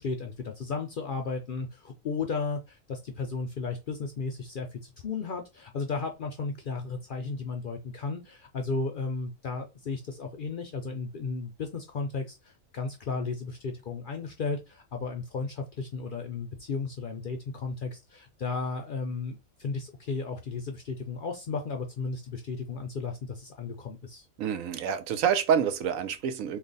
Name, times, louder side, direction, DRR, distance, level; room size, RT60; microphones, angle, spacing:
voice 1, 0.0-24.3, left 4 dB, 60° left, 0.5 m, -34 dB
voice 2, 24.4-26.6, right 8 dB, 85° right, 1.0 m, -27 dB
3.2 x 2.2 x 3.9 m
omnidirectional pair, 1.4 m